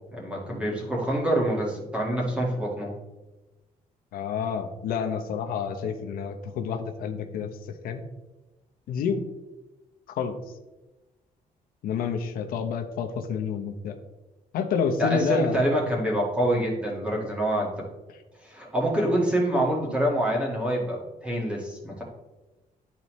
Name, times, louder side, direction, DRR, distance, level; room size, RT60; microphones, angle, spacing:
voice 1, 0.1-2.9 15.0-17.7 18.4-22.0, right 1 dB, 10° right, -3 dB, 1.6 m, -26 dB
voice 2, 4.1-7.5 7.8-8.0 8.9-9.2 10.1-10.4 11.8-14.0 14.5-15.6, left 6 dB, 90° left, 5 dB, 0.7 m, -29 dB
11.5 x 4.1 x 3.0 m, 1.1 s
cardioid pair, 175°, 15 cm